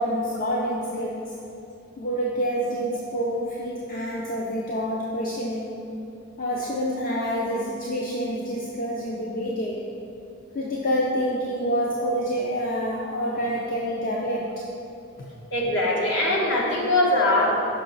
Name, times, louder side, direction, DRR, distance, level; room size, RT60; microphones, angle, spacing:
voice 1, 0.0-1.3 2.0-5.8 6.4-9.8 10.5-14.5, equal, 45° left, -4 dB, 0.6 m, -27 dB
voice 2, 15.5-17.5, left 1 dB, 60° left, -3 dB, 1.2 m, -21 dB
5.8 x 5.7 x 4.0 m, 2.7 s
head